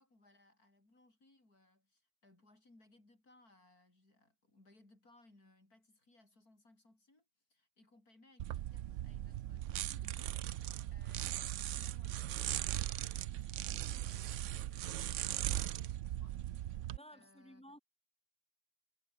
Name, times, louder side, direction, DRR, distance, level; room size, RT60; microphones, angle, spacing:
voice 1, 0.0-12.7 13.6-17.8, left 2 dB, 70° left, 7.3 m, -66 dB
sound 1, 8.4-17.0, right 13 dB, 65° right, 0.8 m, -39 dB
voice 2, 16.9-17.8, equal, 5° left, 2.2 m, -55 dB
omnidirectional pair, 1.6 m